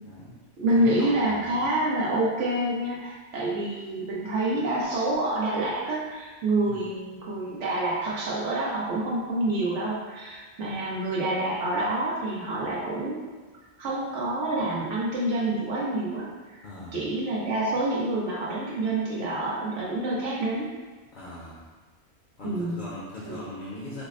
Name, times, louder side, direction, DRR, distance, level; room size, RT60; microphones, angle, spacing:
voice 1, 0.0-0.3 0.7-1.7 6.7-6.8 16.6-17.0 21.1-21.7 22.4-24.0, left 1 dB, 50° left, -6 dB, 0.7 m, -40 dB
voice 2, 0.6-13.2 13.8-16.6 16.9-20.7 22.4-22.8 23.2-23.4, right 1 dB, 85° right, -6 dB, 1.2 m, -27 dB
5.0 x 2.0 x 2.5 m, 1.3 s
omnidirectional pair, 1.2 m